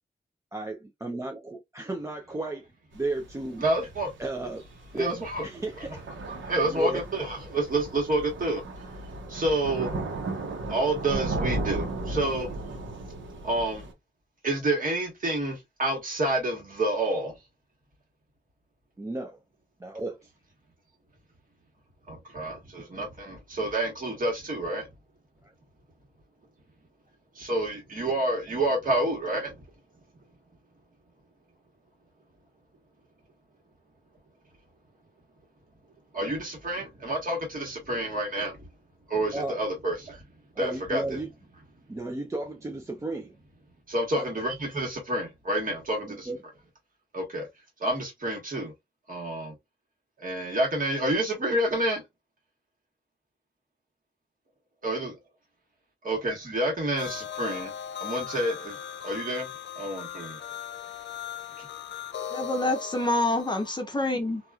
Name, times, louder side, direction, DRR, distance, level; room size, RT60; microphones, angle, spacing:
voice 1, 0.5-2.7 2.9-3.6 4.2-4.7 4.9-5.1 5.4-6.0 6.6-7.0 19.0-19.4 19.8-20.3 25.4-25.5 39.3-39.6 40.6-41.3 41.9-43.4 44.1-44.3 46.0-46.4, right 2 dB, 15° right, 0.4 m, -33 dB
Thunder / Rain, 2.9-13.9, right 2 dB, 90° right, 0.9 m, -35 dB
voice 2, 3.6-4.1 5.0-5.5 5.9-6.0 6.3-8.6 9.3-9.9 10.7-12.5 13.4-13.9 14.4-17.3 22.1-24.9 27.3-29.6 36.1-38.7 39.1-40.2 40.6-41.2 43.9-46.3 47.1-47.5 47.8-48.7 49.1-49.5 50.2-52.0 54.8-55.1 56.0-57.7 58.0-58.8 59.0-59.5 59.7-60.4 61.6-61.7, right 1 dB, 45° right, 1.4 m, -29 dB
sound 1, 57.0-63.8, left 9 dB, 70° left, 0.5 m, -38 dB
voice 3, 62.3-64.4, left 1 dB, 25° left, 0.6 m, -27 dB
2.9 x 2.4 x 2.3 m
wide cardioid pair, 100°, 19 cm